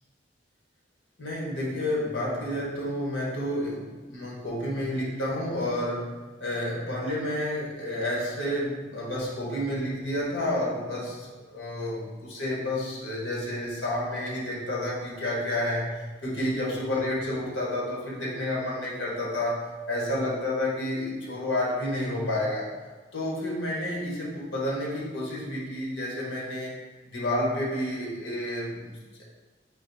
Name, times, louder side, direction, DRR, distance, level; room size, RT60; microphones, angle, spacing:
voice 1, 1.2-22.7 23.1-26.7 27.1-29.2, left 1 dB, 85° left, -4 dB, 1.2 m, -30 dB
4.0 x 2.6 x 4.1 m, 1.3 s
head